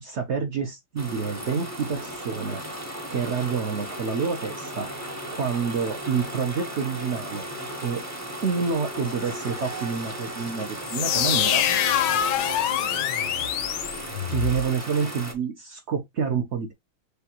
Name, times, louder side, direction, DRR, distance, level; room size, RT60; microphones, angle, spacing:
voice 1, 0.0-2.6 3.1-4.9 5.3-7.5 7.8-8.0 8.4-11.9 14.3-16.7, right 6 dB, 70° right, 0.6 m, -28 dB
sound 1, 1.0-15.3, right 1 dB, 25° right, 0.3 m, -36 dB
sound 2, 10.9-14.7, left 10 dB, 75° left, 1.2 m, -25 dB
6.6 x 2.3 x 2.8 m
omnidirectional pair, 2.0 m